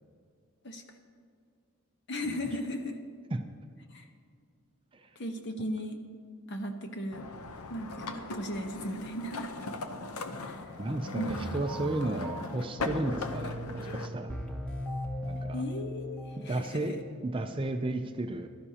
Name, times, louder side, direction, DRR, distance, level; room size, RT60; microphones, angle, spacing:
voice 1, 2.1-3.0 3.9-4.1 5.2-6.0 6.5-7.3 7.7-9.5 10.4-10.6 11.1-11.4 15.5-17.0, equal, 50° left, 5 dB, 1.0 m, -36 dB
sound 1, 7.1-14.1, left 3 dB, 85° left, 0.8 m, -39 dB
voice 2, 10.8-14.3 15.2-15.6 16.4-17.0 17.2-18.5, right 2 dB, 25° right, 7 dB, 0.4 m, -33 dB
sound 2, 11.3-17.3, equal, 5° left, 1.0 m, -39 dB
16.0 x 12.0 x 2.9 m, 2.2 s
head